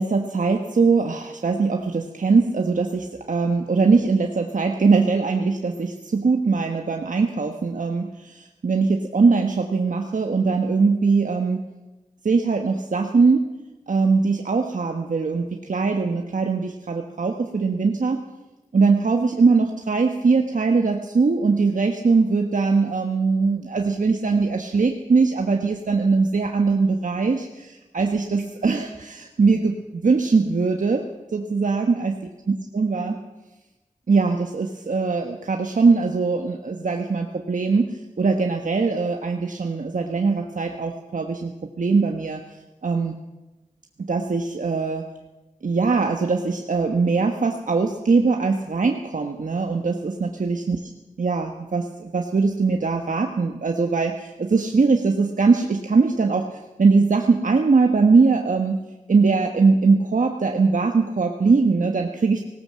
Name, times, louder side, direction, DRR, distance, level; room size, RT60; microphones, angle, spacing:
voice 1, 0.0-11.6 12.2-13.4 13.9-18.2 18.7-31.0 31.3-32.1 32.7-33.2 34.1-41.5 41.8-42.4 42.8-43.2 44.1-45.0 45.6-50.8 51.2-58.8 59.1-62.4, right 4 dB, 80° right, 3 dB, 1.3 m, -21 dB
19.0 x 18.0 x 7.6 m, 1.1 s
wide cardioid pair, 80°, 13 cm